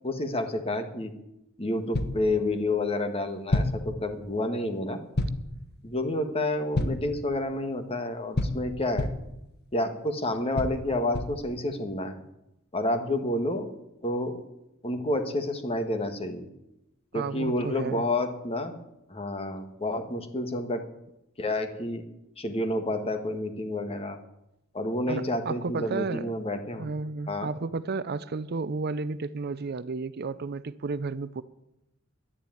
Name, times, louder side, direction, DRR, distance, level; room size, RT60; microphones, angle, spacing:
voice 1, 0.0-1.1 1.6-5.0 5.8-9.1 9.7-12.2 12.7-13.7 14.0-14.4 14.8-16.5 17.1-18.8 19.1-20.8 21.4-22.0 22.4-24.2 24.7-26.9 27.3-27.5, left 1 dB, 30° left, 1.5 m, -29 dB
sound 1, 1.9-2.3 3.5-3.9 5.2-5.5 6.7-7.1 8.4-9.3 10.6-11.5, left 1 dB, 50° left, 1.2 m, -28 dB
voice 2, 17.1-18.1 25.1-26.3 26.8-31.4, right 4 dB, 50° right, 0.5 m, -32 dB
11.0 x 10.5 x 9.1 m
head